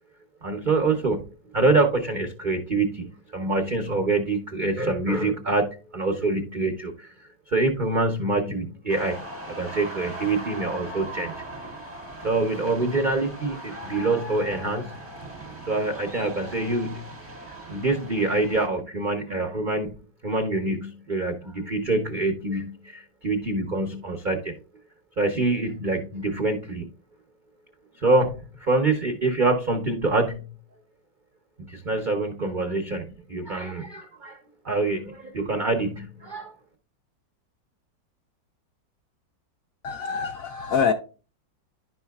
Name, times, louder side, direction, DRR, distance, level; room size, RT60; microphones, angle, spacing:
voice 1, 0.4-1.3 1.5-11.3 12.2-14.9 15.6-17.1 17.5-19.9 20.2-24.5 25.2-26.9 28.0-30.5 31.7-34.4 34.6-36.5, right 2 dB, 85° right, 0.4 m, -25 dB
sound 1, 8.9-18.7, right 1 dB, 5° right, 1.7 m, -39 dB
voice 2, 39.8-40.9, left 6 dB, 75° left, 0.8 m, -25 dB
10.5 x 5.5 x 2.3 m
omnidirectional pair, 2.0 m